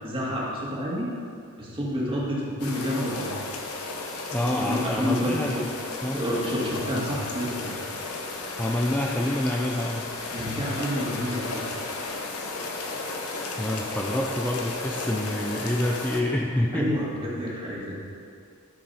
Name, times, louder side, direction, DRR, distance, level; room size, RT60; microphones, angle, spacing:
voice 1, 0.0-1.1 1.6-3.4 4.6-5.6 6.1-7.7 10.3-11.6 16.7-18.0, equal, 25° right, -5 dB, 2.1 m, -29 dB
sound 1, 2.6-16.2, left 3 dB, 85° left, 1.2 m, -34 dB
voice 2, 4.3-5.7 6.0-6.2 8.6-10.1 13.6-16.9, left 1 dB, 5° left, -1 dB, 0.4 m, -27 dB
13.0 x 6.6 x 4.3 m, 2.4 s
head